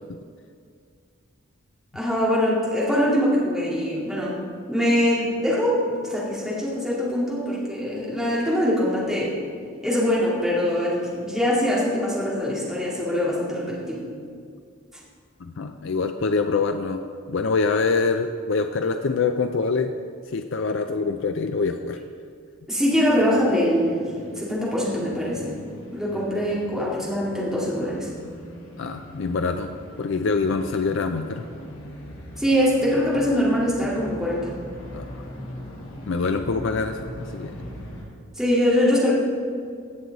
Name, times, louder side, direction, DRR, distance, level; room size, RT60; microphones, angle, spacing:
voice 1, 1.9-4.4 4.7-9.4 9.8-14.0 22.7-25.5 25.9-28.1 32.4-34.5 38.4-39.1, equal, ahead, -6 dB, 2.2 m, -23 dB
voice 2, 15.4-17.0 17.3-19.9 20.3-22.0 28.8-29.7 30.0-31.4 34.9-35.1 36.1-37.7, left 4 dB, 60° left, 7 dB, 0.4 m, -25 dB
sound 1, 22.7-38.0, left 1 dB, 80° left, 2.3 m, -41 dB
17.0 x 6.3 x 4.0 m, 2.2 s
head